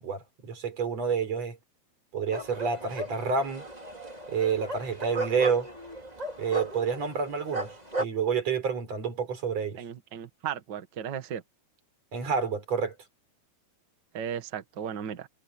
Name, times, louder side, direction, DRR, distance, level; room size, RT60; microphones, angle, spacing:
voice 1, 0.0-1.6 2.1-3.6 4.3-5.7 6.4-7.7 8.0-9.8 12.1-13.0, right 5 dB, 45° right, 5.2 m, -29 dB
sound 1, 2.3-8.1, right 2 dB, 10° right, 4.1 m, -36 dB
voice 2, 9.8-11.4 14.1-15.3, right 8 dB, 85° right, 0.9 m, -35 dB
omnidirectional pair, 4.4 m